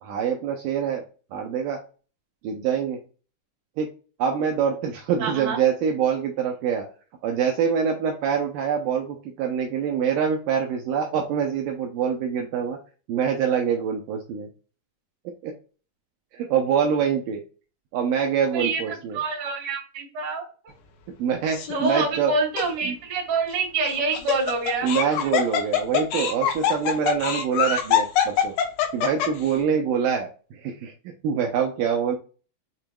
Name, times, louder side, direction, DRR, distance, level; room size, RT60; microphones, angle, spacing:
voice 1, 0.0-1.0 1.3-1.8 2.4-3.0 3.8-3.9 4.2-6.9 7.2-12.8 13.1-14.5 15.4-15.5 16.3-17.4 17.9-19.2 21.2-22.3 22.9-23.0 24.8-28.5 28.9-32.2, right 7 dB, 80° right, 2 dB, 2.0 m, -25 dB
voice 2, 5.2-5.6 18.5-20.4 21.7-24.9, right 4 dB, 55° right, 0 dB, 1.0 m, -26 dB
Laughter, 21.5-21.9 22.6-22.7 23.9-29.5, left 9 dB, 75° left, 2.4 m, -24 dB
7.2 x 3.0 x 2.2 m, 0.35 s
omnidirectional pair, 4.3 m